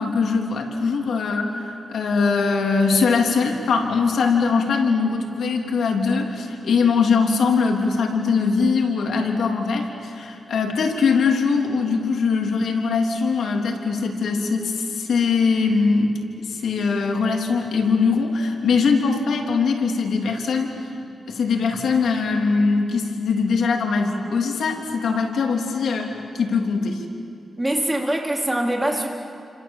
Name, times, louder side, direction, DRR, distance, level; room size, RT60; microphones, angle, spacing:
voice 1, 0.0-16.1 16.4-20.7 21.3-27.0, left 4 dB, 85° left, 1 dB, 3.4 m, -21 dB
voice 2, 27.6-29.1, right 1 dB, 15° right, 0 dB, 4.1 m, -23 dB
30.0 x 26.5 x 7.5 m, 2.4 s
cardioid pair, 90°, 0 cm